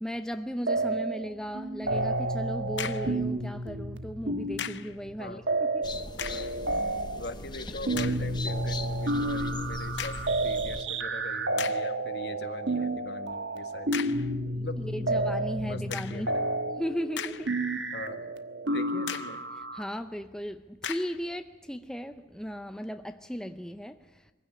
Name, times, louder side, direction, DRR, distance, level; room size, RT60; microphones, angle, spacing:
voice 1, 0.0-5.4 5.7-5.9 14.5-16.3 16.8-17.5 19.7-24.2, equal, 5° left, 0.6 m, -36 dB
sound 1, 0.7-1.3 1.5-19.8, right 2 dB, 85° right, 1.4 m, -31 dB
sound 2, 2.8-3.2 4.6-5.0 6.1-6.6 7.2-7.3 7.9-8.3 10.0-10.4 11.0-11.1 11.6-12.0 13.9-14.3 15.9-16.3 16.9-17.7 18.1-18.2 19.1-19.4 20.8-21.2, left 9 dB, 80° left, 0.8 m, -37 dB
sound 3, 5.8-10.8, left 2 dB, 25° left, 1.0 m, -40 dB
voice 2, 7.2-14.0 14.6-15.1 15.6-16.5 17.9-18.2 18.7-19.4, left 2 dB, 65° left, 1.7 m, -41 dB
23.0 x 16.0 x 9.6 m
head